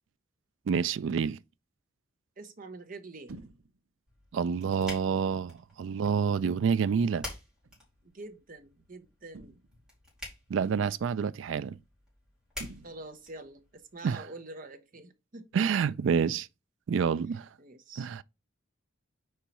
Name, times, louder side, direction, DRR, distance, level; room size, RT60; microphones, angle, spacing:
voice 1, 0.7-1.4 4.3-7.3 10.5-11.8 14.0-14.2 15.5-16.5 16.9-17.5 18.0-18.2, right 6 dB, 65° right, 0.3 m, -28 dB
voice 2, 2.4-3.3 8.1-9.6 12.8-15.5 17.6-18.1, right 2 dB, 45° right, 0.8 m, -46 dB
sound 1, 3.3-3.8 4.7-5.0 6.0-6.5 7.6-7.9 9.3-9.8 10.7-11.2 12.6-13.3, right 2 dB, 85° right, 0.7 m, -49 dB
sound 2, 4.1-14.0, left 1 dB, 5° right, 3.1 m, -49 dB
4.6 x 4.4 x 5.2 m
head